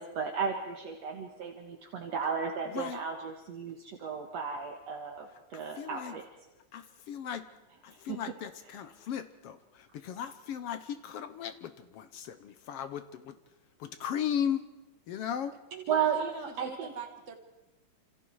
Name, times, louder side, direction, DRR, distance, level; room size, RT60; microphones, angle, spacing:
voice 1, 0.0-6.2 7.9-8.2 15.9-16.9, right 6 dB, 60° right, 2 dB, 2.7 m, -34 dB
voice 2, 5.8-6.1 6.7-7.4 7.8-13.3 13.8-14.6 15.1-15.5, left 8 dB, 65° left, 10 dB, 1.6 m, -36 dB
voice 3, 15.5-17.4, right 7 dB, 30° right, 5 dB, 1.5 m, -43 dB
28.5 x 27.5 x 4.7 m, 1.1 s
omnidirectional pair, 3.5 m